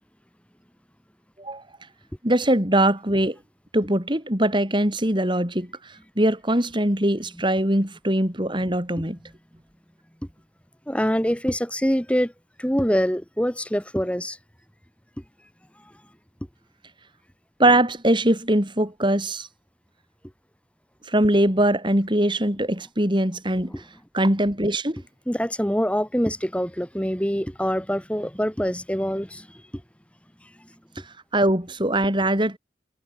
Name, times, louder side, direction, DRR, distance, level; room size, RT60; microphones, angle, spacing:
voice 1, 2.2-3.4 3.7-9.2 17.6-19.5 21.0-23.8 24.1-25.0 31.0-32.6, right 1 dB, 25° right, 6.0 m, -22 dB
voice 2, 10.9-12.3 12.6-14.4 23.7-23.8 25.3-29.6 30.6-30.7, equal, 5° left, 6.4 m, -25 dB
head